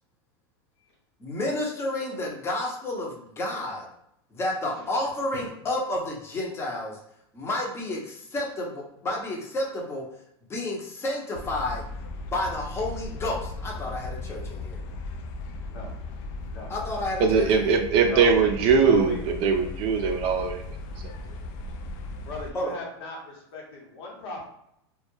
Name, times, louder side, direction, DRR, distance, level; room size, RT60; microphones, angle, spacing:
voice 1, 1.2-3.9 4.3-7.0 7.3-10.0 10.5-11.8 12.3-14.8 16.7-17.8 22.5-22.8, left 1 dB, 20° left, -1 dB, 0.7 m, -31 dB
sound 1, 11.3-22.5, left 2 dB, 50° left, 0.4 m, -37 dB
voice 2, 17.2-20.6 21.0-21.1, right 5 dB, 45° right, 4 dB, 0.4 m, -21 dB
voice 3, 18.0-19.2 22.2-24.5, left 2 dB, 70° left, -2 dB, 1.0 m, -38 dB
2.2 x 2.0 x 3.0 m, 0.76 s
supercardioid pair, 120°, 14 cm